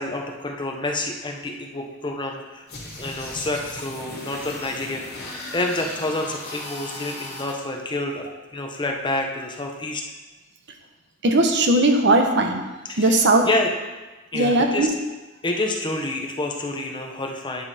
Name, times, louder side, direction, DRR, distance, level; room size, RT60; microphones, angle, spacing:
voice 1, 0.0-2.7 3.0-10.0 12.9-13.7 14.3-14.9 15.4-17.6, left 2 dB, 25° left, 2 dB, 0.9 m, -28 dB
sound 1, 2.7-7.5, left 2 dB, 50° left, 2.7 m, -37 dB
voice 2, 11.2-12.6 13.0-13.5 14.3-14.9, right 2 dB, 60° right, 4 dB, 1.0 m, -18 dB
10.5 x 5.4 x 4.2 m, 1.2 s
head